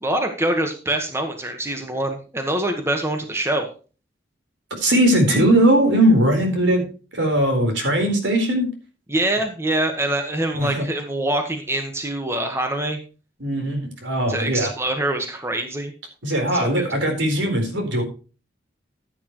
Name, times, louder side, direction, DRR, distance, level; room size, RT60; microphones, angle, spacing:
voice 1, 0.0-3.7 9.1-13.0 14.3-15.9 16.5-16.8, right 1 dB, 15° right, 5 dB, 1.3 m, -24 dB
voice 2, 4.8-6.8 7.1-8.7 10.5-10.9 13.4-14.7 16.2-18.0, right 1 dB, 80° right, 4 dB, 4.1 m, -19 dB
14.5 x 8.7 x 3.1 m, 0.36 s
head